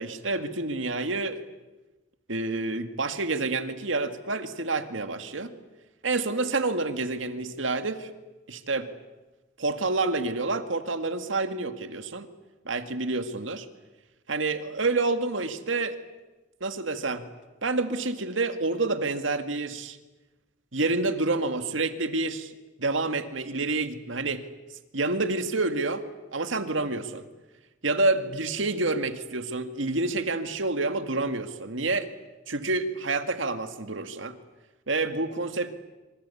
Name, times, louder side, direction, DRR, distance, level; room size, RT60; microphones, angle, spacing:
voice 1, 0.0-1.4 2.3-5.5 6.0-8.1 8.5-8.9 9.6-12.3 12.7-13.7 14.3-16.0 16.6-17.2 17.6-20.0 20.7-22.5 22.8-24.4 24.9-26.0 26.3-27.2 27.8-32.1 32.5-34.4 34.9-35.7, right 3 dB, 80° right, 9 dB, 2.0 m, -28 dB
26.0 x 25.5 x 8.5 m, 1.2 s
head